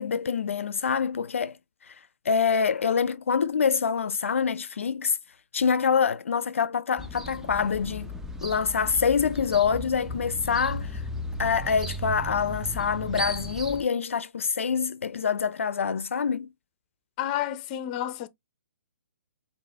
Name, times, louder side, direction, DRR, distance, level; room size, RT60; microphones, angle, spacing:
voice 1, 0.0-1.6 1.9-2.0 2.3-5.2 5.5-8.1 8.4-11.0 11.4-16.5, left 6 dB, 75° left, 0.4 m, -26 dB
sound 1, 7.0-13.8, equal, 5° right, 0.6 m, -35 dB
voice 2, 17.2-18.3, left 12 dB, 35° left, 0.7 m, -30 dB
4.8 x 2.5 x 3.4 m
hypercardioid pair, 135°, 7 cm